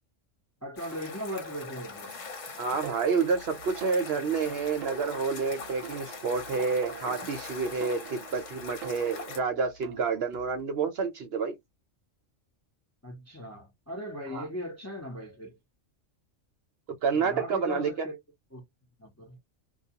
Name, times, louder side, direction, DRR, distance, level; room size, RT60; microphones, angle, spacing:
voice 1, 0.6-2.2 13.0-15.6 17.1-18.2 18.5-18.6 19.0-19.4, equal, 20° left, 0.5 m, -38 dB
sound 1, 0.8-9.4, left 4 dB, 75° left, 1.2 m, -42 dB
voice 2, 2.6-11.5 14.3-14.5 17.0-18.1, right 5 dB, 60° right, 0.7 m, -29 dB
sound 2, 2.8-10.6, right 9 dB, 90° right, 1.0 m, -44 dB
2.3 x 2.2 x 2.7 m
omnidirectional pair, 1.3 m